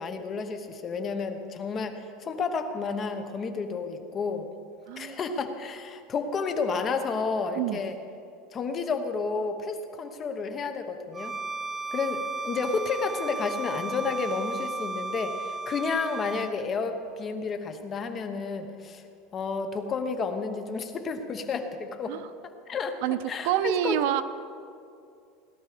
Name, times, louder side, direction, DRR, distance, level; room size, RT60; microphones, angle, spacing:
voice 1, 0.0-4.5 5.0-8.0 8.5-11.3 11.9-19.0 19.3-22.2 22.7-23.0 23.3-24.0, left 4 dB, 25° left, 7 dB, 1.0 m, -31 dB
voice 2, 4.9-5.2 7.6-7.8 22.1-22.3 23.0-23.2 23.4-24.2, right 12 dB, 65° right, 13 dB, 0.6 m, -27 dB
Bowed string instrument, 11.1-16.6, right 3 dB, 20° right, 0.4 m, -34 dB
17.5 x 12.0 x 5.1 m, 2.4 s
supercardioid pair, 160°, 0 cm